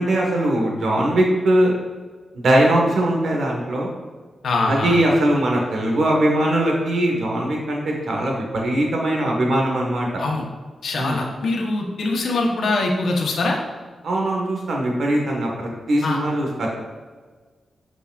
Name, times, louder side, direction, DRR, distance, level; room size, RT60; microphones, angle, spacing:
voice 1, 0.0-1.7 2.3-3.9 4.7-10.2 11.0-11.2 14.0-16.7, right 1 dB, 75° right, -1 dB, 1.4 m, -20 dB
voice 2, 4.4-5.0 10.2-10.5 10.8-13.6 16.0-16.2, left 2 dB, 80° left, 0 dB, 1.0 m, -23 dB
8.2 x 4.8 x 2.5 m, 1.4 s
wide cardioid pair, 105°, 0 cm